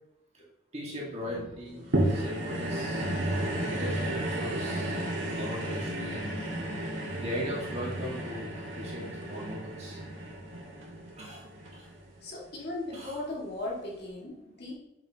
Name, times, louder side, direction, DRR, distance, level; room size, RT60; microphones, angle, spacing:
voice 1, 0.7-3.1 3.5-5.1 5.4-6.4 6.9-8.5 8.7-10.0 11.2-11.9 12.9-13.2, equal, 35° right, -3 dB, 1.8 m, -39 dB
sound 1, 0.9-8.2, left 2 dB, 5° right, 2.6 m, -46 dB
sound 2, 1.9-12.4 13.0-13.1, right 1 dB, 75° right, 1.9 m, -33 dB
voice 2, 12.2-14.7, left 2 dB, 55° left, -4 dB, 2.1 m, -37 dB
7.5 x 7.1 x 2.9 m, 0.86 s
head